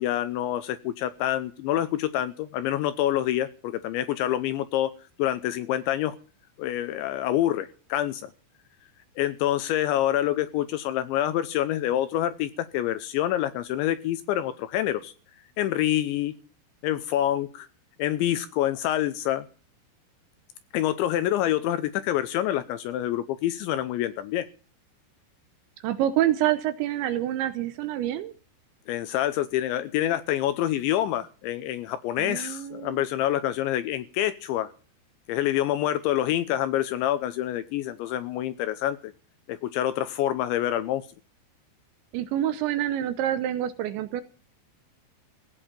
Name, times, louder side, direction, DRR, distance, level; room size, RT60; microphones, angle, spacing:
voice 1, 0.0-4.9 5.2-6.2 6.6-8.3 9.2-15.1 15.6-16.3 16.8-17.7 18.0-19.5 20.7-24.5 28.9-34.7 35.3-39.1 39.5-41.1, left 12 dB, 80° left, 12 dB, 2.8 m, -27 dB
voice 2, 25.8-28.3 32.2-33.0 42.1-44.2, right 12 dB, 75° right, 11 dB, 2.9 m, -27 dB
17.0 x 6.5 x 8.7 m, 0.40 s
omnidirectional pair, 5.9 m